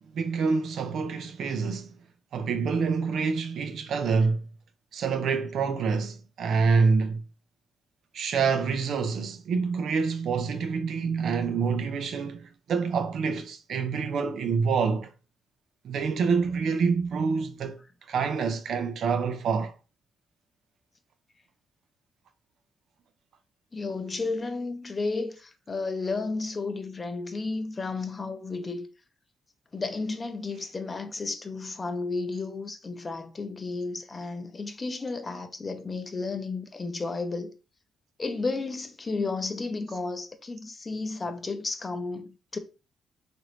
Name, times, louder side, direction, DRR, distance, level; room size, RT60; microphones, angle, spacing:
voice 1, 0.1-1.9 2.3-4.4 4.9-7.2 8.1-15.1 15.8-17.8 18.1-19.8, right 5 dB, 70° right, 0.5 m, -27 dB
voice 2, 23.7-28.9 29.7-37.5 38.2-42.6, left 3 dB, 30° left, 0.6 m, -32 dB
3.0 x 2.5 x 3.0 m
cardioid pair, 100°, 0 cm